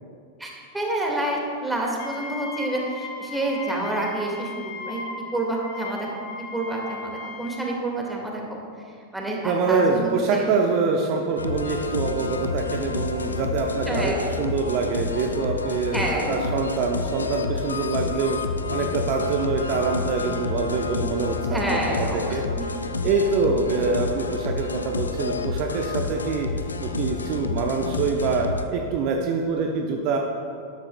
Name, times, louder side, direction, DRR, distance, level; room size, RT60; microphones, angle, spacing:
voice 1, 0.4-5.0 5.3-6.1 6.5-8.6 9.1-10.5 13.9-14.3 15.9-16.4 21.4-22.7, right 1 dB, 5° right, -1 dB, 1.9 m, -28 dB
Wind instrument woodwind instrument, 2.0-7.9, left 3 dB, 50° left, 1.3 m, -37 dB
voice 2, 9.4-18.4 18.7-21.8 22.1-22.4 23.0-26.5 26.8-30.2, right 4 dB, 45° right, 2 dB, 0.8 m, -25 dB
sound 1, 11.4-28.7, left 4 dB, 75° left, 0.5 m, -29 dB
12.5 x 11.5 x 2.3 m, 2.3 s
figure-of-eight pair, 90°, 0 cm